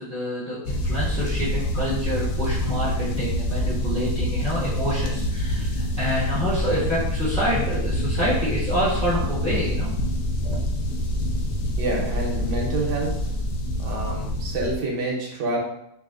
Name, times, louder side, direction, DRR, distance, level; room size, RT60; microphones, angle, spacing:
voice 1, 0.0-9.9 10.4-10.6, equal, 10° left, -9 dB, 0.5 m, -27 dB
sound 1, 0.6-14.8, left 1 dB, 85° left, 1.2 m, -26 dB
voice 2, 11.8-13.1 13.8-15.6, right 2 dB, 80° right, -1 dB, 1.4 m, -27 dB
4.8 x 2.5 x 2.4 m, 0.76 s
omnidirectional pair, 1.8 m